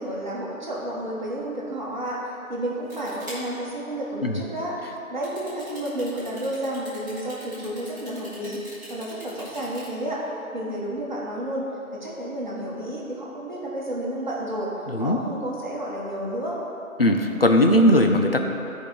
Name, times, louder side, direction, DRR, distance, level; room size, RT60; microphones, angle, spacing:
voice 1, 0.0-4.7 5.1-8.6 8.9-10.2 10.5-11.7 12.0-14.7 15.0-16.6, right 1 dB, 30° right, -6 dB, 1.5 m, -31 dB
sound 1, 2.9-3.6 5.2-9.9, equal, 15° right, 1.6 m, -42 dB
voice 2, 14.9-15.2 17.0-18.5, left 1 dB, 45° left, 3 dB, 0.6 m, -19 dB
13.0 x 5.1 x 4.0 m, 2.9 s
figure-of-eight pair, 170°, 43 cm